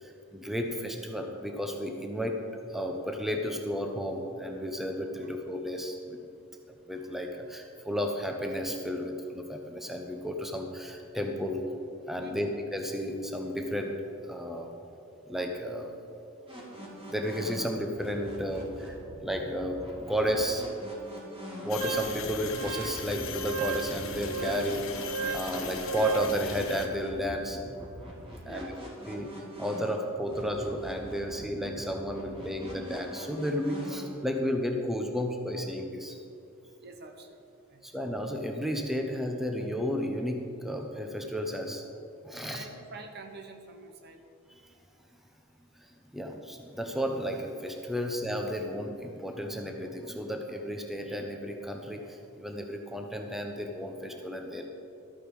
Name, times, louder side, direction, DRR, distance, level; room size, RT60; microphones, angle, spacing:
voice 1, 0.0-2.4 2.7-6.2 6.9-11.7 12.1-14.0 14.3-14.7 15.3-15.9 17.1-20.6 21.6-24.8 25.3-27.6 28.4-28.7 29.1-36.2 37.8-41.8 42.2-42.7 45.8-45.9 46.1-54.7, equal, ahead, 3 dB, 0.8 m, -33 dB
voice 2, 12.2-12.5 28.4-28.8 36.8-37.4 37.7-37.9 42.4-44.2 47.9-48.1, right 3 dB, 55° right, 5 dB, 1.1 m, -47 dB
sound 1, 16.5-34.2, equal, 25° right, 2.8 m, -44 dB
sound 2, 21.7-26.9, left 5 dB, 75° left, 1.2 m, -39 dB
Wind instrument woodwind instrument, 21.8-26.4, right 5 dB, 85° right, 0.3 m, -36 dB
13.0 x 8.6 x 4.8 m, 2.5 s
head